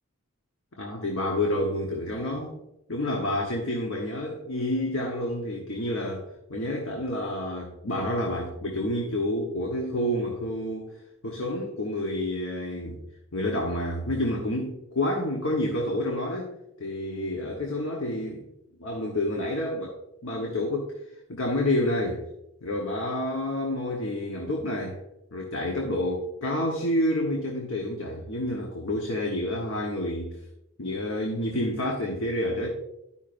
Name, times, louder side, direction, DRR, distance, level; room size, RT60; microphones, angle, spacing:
voice 1, 0.7-2.5 2.9-10.9 11.2-13.0 13.3-16.5 16.8-18.5 18.8-20.9 21.3-22.2 22.6-25.0 25.3-30.4 30.8-32.7, left 1 dB, 85° left, 0 dB, 1.1 m, -29 dB
12.0 x 5.6 x 2.5 m, 0.87 s
head